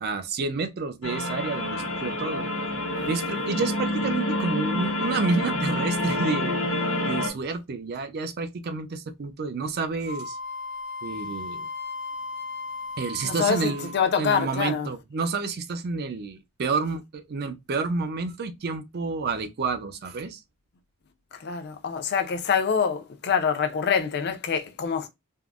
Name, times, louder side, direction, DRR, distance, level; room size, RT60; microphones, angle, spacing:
voice 1, 0.0-2.5 3.1-6.6 7.1-10.4 11.0-11.7 13.0-13.9 14.2-20.4, right 4 dB, 45° right, 0.4 m, -29 dB
sound 1, 1.0-7.3, left 1 dB, 70° left, 1.0 m, -28 dB
voice 2, 3.0-3.5 13.2-14.9 21.3-25.1, left 6 dB, 45° left, 0.4 m, -26 dB
Wind instrument woodwind instrument, 10.0-14.2, left 3 dB, 75° right, 1.6 m, -36 dB
3.5 x 2.0 x 2.3 m
head